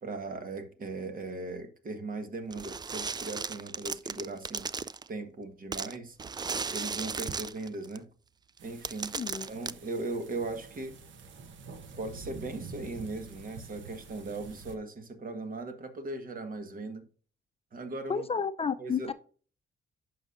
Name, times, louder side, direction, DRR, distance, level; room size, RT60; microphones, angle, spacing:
voice 1, 0.0-4.7 5.1-6.2 6.7-8.1 8.6-9.1 9.5-10.9 12.0-17.1 17.7-18.3 18.8-19.1, right 2 dB, 45° right, 1.5 m, -38 dB
sound 1, 2.5-5.1 5.7-8.0 8.6-8.7 8.8-9.7, right 5 dB, 20° right, 0.3 m, -36 dB
sound 2, 8.6-14.8, right 4 dB, 70° right, 1.2 m, -47 dB
voice 2, 9.2-9.5 18.1-19.1, left 6 dB, 30° left, 0.6 m, -31 dB
11.0 x 6.3 x 2.6 m
cardioid pair, 90°, 20 cm